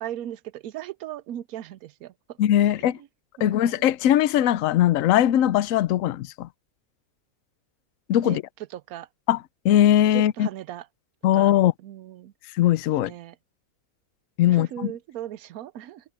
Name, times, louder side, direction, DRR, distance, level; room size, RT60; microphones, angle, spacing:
voice 1, 0.0-2.1 3.4-3.7 8.2-8.4 8.7-9.1 10.1-10.8 11.4-11.5 11.8-12.3 13.1-13.3 14.5-16.0, right 11 dB, 80° right, 1.1 m, -37 dB
voice 2, 2.4-3.0 3.4-6.5 8.1-8.4 9.3-10.5 11.2-11.7 12.5-13.1 14.4-14.9, left 12 dB, 70° left, 1.0 m, -20 dB
omnidirectional pair, 1.5 m